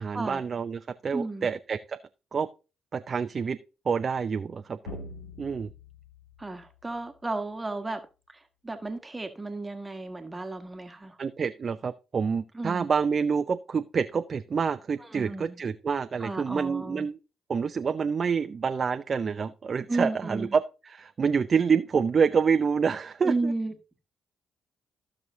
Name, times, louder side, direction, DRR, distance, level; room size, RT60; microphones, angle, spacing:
voice 1, 0.0-2.0 2.3-2.5 2.9-3.6 3.9-4.8 5.4-5.7 11.2-17.2 17.5-23.3, right 6 dB, 45° right, 0.6 m, -27 dB
voice 2, 1.1-1.5 6.4-8.0 8.3-11.2 12.5-12.9 15.0-15.6 16.2-17.1 19.9-20.5 23.2-23.7, right 2 dB, 20° right, 1.4 m, -33 dB
sound 1, 4.9-7.5, left 2 dB, 85° left, 2.3 m, -45 dB
15.0 x 6.4 x 2.7 m
hypercardioid pair, 45°, 0 cm